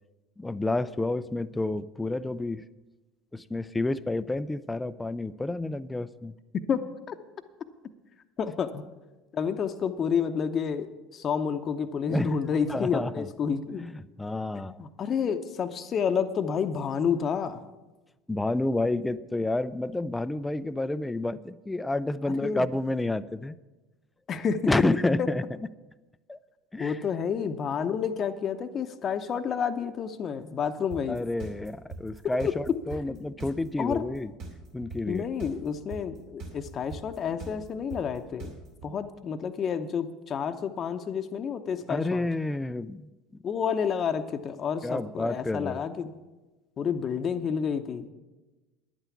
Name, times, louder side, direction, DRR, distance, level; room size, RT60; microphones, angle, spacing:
voice 1, 0.4-2.6 3.3-6.3 12.1-12.4 12.7-13.2 13.8-13.9 14.2-14.8 18.3-23.6 24.7-25.4 26.3-26.4 26.7-27.0 31.1-34.3 34.7-35.3 41.9-43.1 44.8-45.8, left 2 dB, 10° left, 13 dB, 0.4 m, -29 dB
voice 2, 8.4-8.8 9.3-13.9 14.5-17.6 22.2-22.7 24.3-24.6 25.2-25.3 26.8-31.2 32.2-32.5 32.9-33.2 33.8-34.0 35.1-38.5 38.8-42.3 43.4-46.1 46.8-48.1, left 7 dB, 40° left, 7 dB, 0.8 m, -30 dB
sound 1, 30.9-38.9, right 3 dB, 60° right, 3.8 m, -40 dB
10.5 x 8.9 x 7.1 m, 1.1 s
hypercardioid pair, 75°, 0 cm